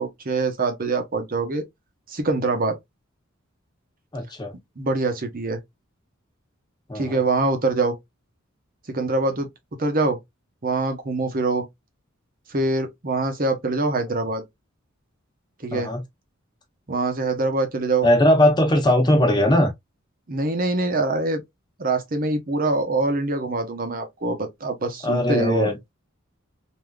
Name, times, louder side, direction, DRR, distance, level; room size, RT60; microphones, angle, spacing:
voice 1, 0.0-1.6 2.1-2.8 4.8-5.6 6.9-8.0 8.9-9.5 9.8-10.2 10.6-11.7 12.5-14.4 15.6-15.9 16.9-18.1 20.3-21.4 21.8-25.7, right 3 dB, 45° right, 0.8 m, -24 dB
voice 2, 4.1-4.5 6.9-7.2 15.7-16.0 18.0-19.7 25.0-25.7, left 1 dB, 20° left, 1.0 m, -19 dB
3.5 x 2.7 x 2.3 m
head